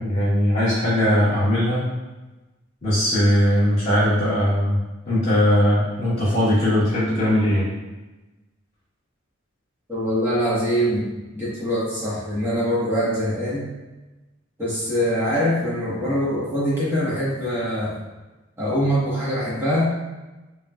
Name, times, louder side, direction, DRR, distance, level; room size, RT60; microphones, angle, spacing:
voice 1, 0.0-1.9 2.8-7.7, left 1 dB, 35° left, -14 dB, 1.3 m, -20 dB
voice 2, 9.9-11.1 11.3-13.7 14.6-18.0 18.6-19.9, equal, 10° right, -11 dB, 1.4 m, -23 dB
3.6 x 3.2 x 2.4 m, 1.1 s
head